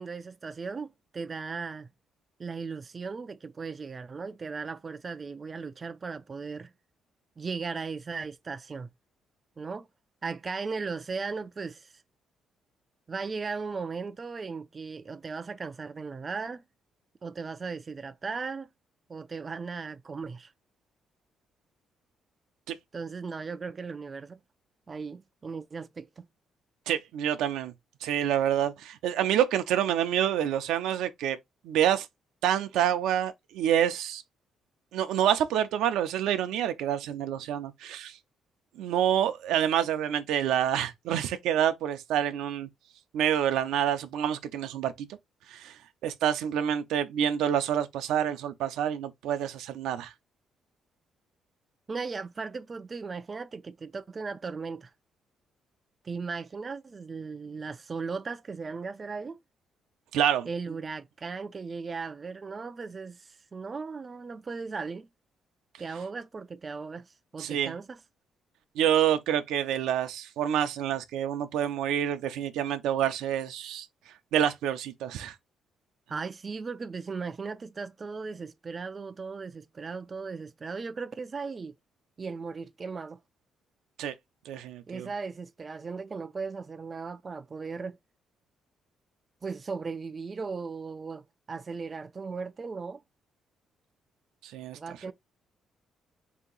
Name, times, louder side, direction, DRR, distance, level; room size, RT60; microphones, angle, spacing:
voice 1, 0.0-1.9 2.4-6.7 7.4-8.9 9.6-9.9 10.2-11.9 13.1-16.6 17.2-18.7 19.1-20.5 22.9-24.4 24.9-26.3 51.9-54.9 56.0-59.4 60.5-65.1 65.8-68.0 76.1-81.7 82.2-83.2 84.9-88.0 89.4-91.2 91.5-93.0 94.7-95.1, right 4 dB, 35° right, 0.4 m, -37 dB
voice 2, 26.9-27.7 28.0-31.4 31.6-32.1 32.4-34.2 34.9-38.2 38.8-42.7 43.1-45.1 45.5-45.7 46.0-50.1 60.1-60.5 67.4-67.7 68.8-73.9 74.3-75.3 84.0-84.1 84.5-85.1 94.4-95.1, right 10 dB, 90° right, 0.5 m, -27 dB
3.4 x 2.9 x 3.8 m
cardioid pair, 90°, 0 cm